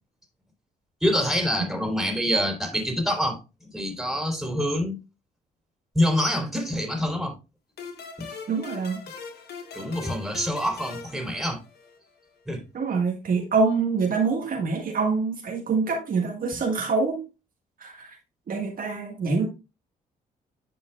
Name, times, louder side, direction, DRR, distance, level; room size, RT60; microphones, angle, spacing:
voice 1, 1.0-3.4 3.7-4.9 5.9-7.3 8.2-8.3 9.7-11.6 12.4-12.6, equal, ahead, 3.6 m, -26 dB
sound 1, 7.8-12.1, left 5 dB, 65° left, 1.6 m, -41 dB
voice 2, 8.5-9.0 12.7-17.2 17.8-18.2 18.5-19.5, right 4 dB, 55° right, 1.6 m, -25 dB
10.0 x 5.6 x 2.3 m
supercardioid pair, 60°, 18 cm